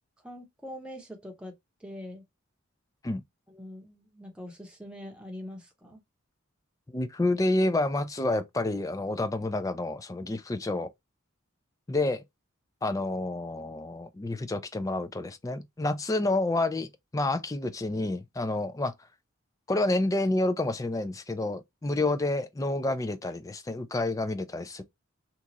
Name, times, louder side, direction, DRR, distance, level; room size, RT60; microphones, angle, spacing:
voice 1, 0.2-1.5 1.8-2.2 3.5-6.0, left 1 dB, 5° right, 0.8 m, -43 dB
voice 2, 6.9-10.9 11.9-12.2 12.8-18.9 19.7-24.8, left 2 dB, 15° left, 0.3 m, -29 dB
2.9 x 2.4 x 3.9 m
head